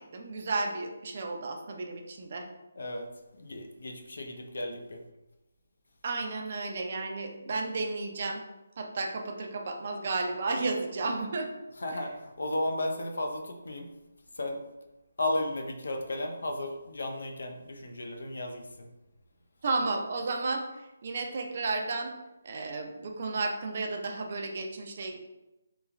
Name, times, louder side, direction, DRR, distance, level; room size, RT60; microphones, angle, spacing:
voice 1, 0.0-2.5 6.0-8.4 8.8-11.5 11.9-12.1 19.6-22.1 22.4-25.2, right 3 dB, 45° right, 3 dB, 0.4 m, -33 dB
voice 2, 2.8-3.1 3.4-5.0 11.8-13.9 14.4-14.6 15.2-18.7, left 1 dB, 75° left, 4 dB, 0.5 m, -34 dB
3.0 x 2.2 x 2.4 m, 1.0 s
hypercardioid pair, 160°, 0 cm